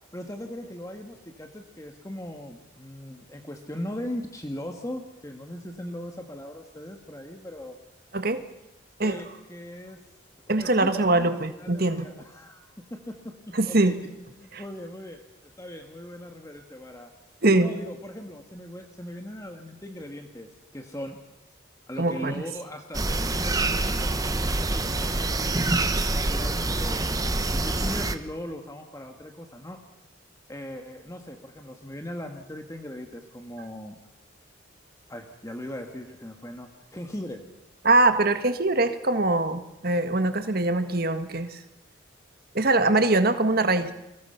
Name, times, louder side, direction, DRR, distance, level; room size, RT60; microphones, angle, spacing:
voice 1, 0.1-7.8 9.0-10.0 10.6-14.0 14.4-15.2 15.6-17.1 17.6-21.2 21.9-25.5 26.1-29.8 30.5-34.0 35.1-37.4 40.7-41.2, left 1 dB, 15° left, 4 dB, 1.7 m, -39 dB
voice 2, 10.5-12.1 13.5-14.0 17.4-17.7 22.0-22.4 37.8-41.6 42.5-43.9, right 2 dB, 50° right, 9 dB, 1.7 m, -22 dB
sound 1, 22.9-28.2, right 2 dB, 20° right, 1.1 m, -26 dB
30.0 x 22.5 x 5.8 m, 0.95 s
head